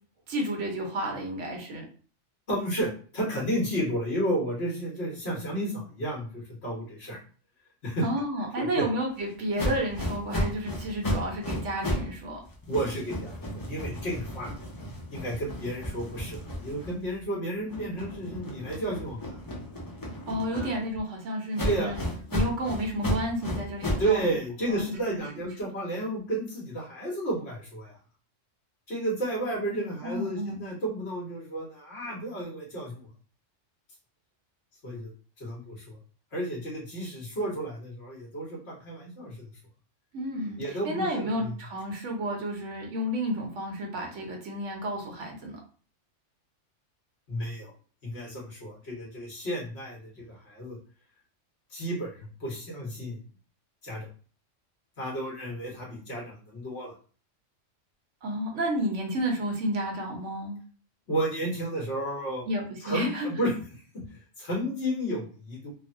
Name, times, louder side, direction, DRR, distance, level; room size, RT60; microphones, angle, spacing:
voice 1, 0.3-1.9 8.0-12.4 20.3-22.0 22.3-24.3 24.7-25.2 29.7-30.6 40.1-45.6 58.2-60.6 62.5-63.5, equal, 75° right, 1 dB, 1.1 m, -31 dB
voice 2, 2.5-7.2 7.8-8.0 8.6-8.8 12.7-14.5 15.1-19.4 20.5-20.7 21.6-21.9 24.0-28.0 28.9-33.1 34.8-35.1 35.4-36.0 36.3-39.5 40.6-41.5 47.3-47.7 48.0-50.8 51.7-53.2 53.8-54.1 55.0-56.9 61.1-62.5 62.8-63.5 63.9-64.0 64.4-65.7, right 1 dB, 60° left, -5 dB, 1.4 m, -32 dB
sound 1, 9.6-12.2 12.5-17.2 17.7-21.0 21.5-24.1, left 1 dB, 30° left, 0.4 m, -33 dB
3.2 x 2.1 x 2.5 m, 0.41 s
omnidirectional pair, 1.3 m